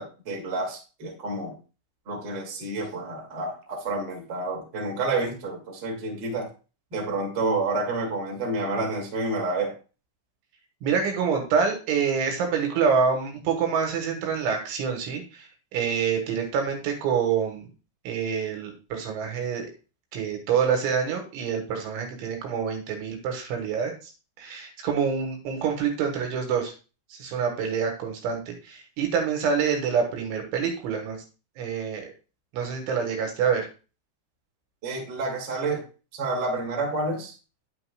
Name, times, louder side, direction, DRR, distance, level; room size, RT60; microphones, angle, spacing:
voice 1, 0.0-1.5 2.1-6.5 6.9-9.7 34.8-35.8 36.1-37.3, right 2 dB, 35° right, -1 dB, 1.8 m, -29 dB
voice 2, 10.8-15.5 15.7-17.7 18.1-19.6 20.1-23.9 24.4-26.7 27.1-31.2 31.6-32.1 32.5-33.7, right 6 dB, 70° right, 3 dB, 3.5 m, -26 dB
9.6 x 8.9 x 2.4 m, 0.33 s
omnidirectional pair, 5.9 m